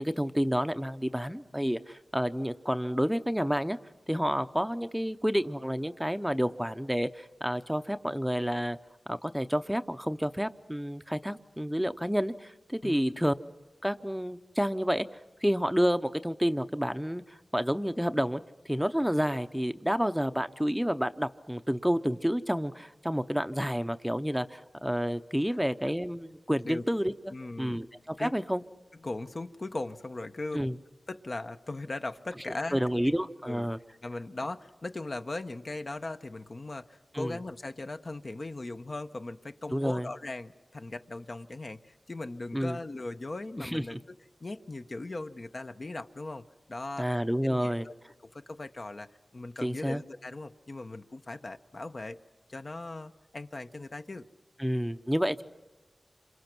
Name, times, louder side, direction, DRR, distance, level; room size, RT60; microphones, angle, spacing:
voice 1, 0.0-3.8 4.1-8.8 9.1-13.3 13.8-15.0 15.4-27.1 27.6-28.6 30.5-30.8 32.7-33.8 37.1-37.4 39.7-40.1 42.5-42.8 43.6-44.0 47.0-47.9 49.6-50.0 54.6-55.4, equal, 5° right, 10 dB, 0.7 m, -29 dB
voice 2, 12.8-13.2 25.5-25.6 26.6-26.8 27.3-27.8 28.2-28.3 29.0-30.6 31.1-32.8 33.4-33.7 34.0-44.0 44.4-46.4 46.7-47.1 47.4-47.9 48.2-52.2 52.5-54.3, left 2 dB, 50° left, 7 dB, 1.0 m, -39 dB
28.0 x 26.5 x 6.1 m, 1.2 s
wide cardioid pair, 65°, 0 cm